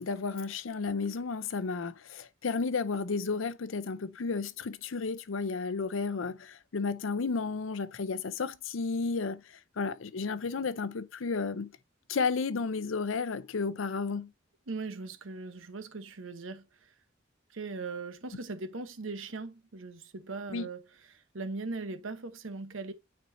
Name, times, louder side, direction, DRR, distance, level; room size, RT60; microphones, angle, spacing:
voice 1, 0.0-11.7 12.1-14.3 20.5-20.7, left 4 dB, 80° left, 0.6 m, -32 dB
voice 2, 14.7-16.9 17.5-22.9, right 3 dB, 75° right, 1.0 m, -40 dB
9.2 x 4.5 x 2.7 m
head